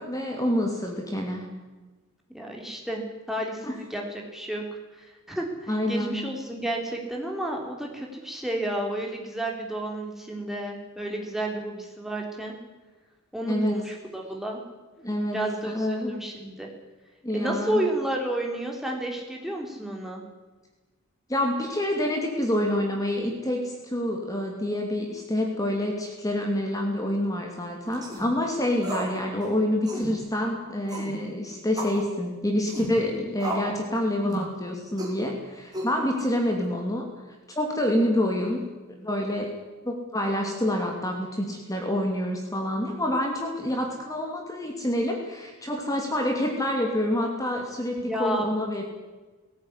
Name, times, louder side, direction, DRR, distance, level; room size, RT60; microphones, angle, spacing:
voice 1, 0.0-1.4 3.6-3.7 5.7-6.2 13.5-13.8 15.0-15.4 15.6-16.1 17.2-17.8 21.3-37.1 37.5-38.7 39.0-39.5 39.8-48.8, left 1 dB, 15° left, 1 dB, 2.8 m, -27 dB
voice 2, 2.3-3.0 3.3-4.6 5.0-12.5 13.3-14.6 15.3-16.7 17.3-20.2 48.1-48.5, right 1 dB, ahead, 0 dB, 3.5 m, -31 dB
sound 1, 27.9-28.3 28.8-29.2 29.4-29.5 29.9-30.1 30.9-31.1 31.8-32.0 32.7-32.9 33.4-33.8 34.2-34.5 35.0-35.2 35.7-36.2, right 1 dB, 20° right, 5.5 m, -33 dB
19.0 x 17.5 x 9.8 m, 1.2 s
head